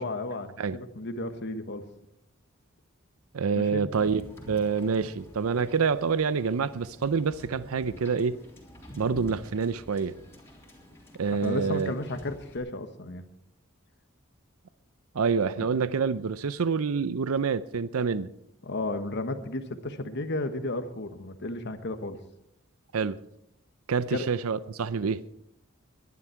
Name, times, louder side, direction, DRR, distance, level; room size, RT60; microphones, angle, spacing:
voice 1, 0.0-1.8 3.5-4.1 11.3-13.2 15.6-15.7 18.6-22.2 24.1-24.2, left 2 dB, 55° left, 9 dB, 1.3 m, -33 dB
voice 2, 3.3-4.2 4.5-8.4 9.0-10.2 11.2-11.9 15.1-18.3 22.9-23.2 23.9-25.2, right 5 dB, 90° right, 16 dB, 0.5 m, -27 dB
Wind / Boat Water vehicle, 4.0-12.6, equal, 15° left, 3.7 m, -48 dB
21.0 x 11.0 x 4.6 m, 0.78 s
head